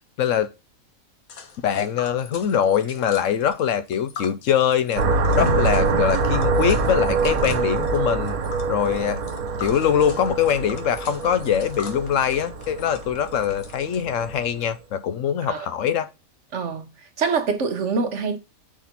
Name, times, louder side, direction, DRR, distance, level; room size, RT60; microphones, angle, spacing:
voice 1, 0.2-0.5 1.6-5.0 5.4-8.4 8.7-9.2 9.6-16.1, left 9 dB, 70° left, 0.9 m, -23 dB
Tick, 1.3-14.0, left 6 dB, 85° left, 1.6 m, -41 dB
sound 1, 5.0-14.5, right 4 dB, 85° right, 1.4 m, -25 dB
sound 2, 5.3-9.7, left 2 dB, 25° left, 1.0 m, -33 dB
voice 2, 16.5-16.8 17.2-18.4, right 5 dB, 60° right, 1.3 m, -24 dB
6.0 x 4.1 x 5.8 m
omnidirectional pair, 1.4 m